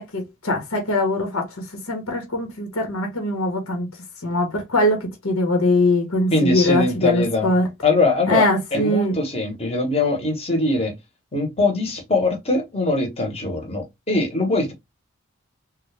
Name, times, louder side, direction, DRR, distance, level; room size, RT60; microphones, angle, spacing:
voice 1, 0.0-1.5 1.9-3.9 4.2-7.7 8.3-9.1, left 1 dB, 80° left, 1.4 m, -21 dB
voice 2, 6.3-7.5 7.8-10.9 11.3-14.7, left 2 dB, 30° left, 1.3 m, -22 dB
3.9 x 2.5 x 3.3 m
head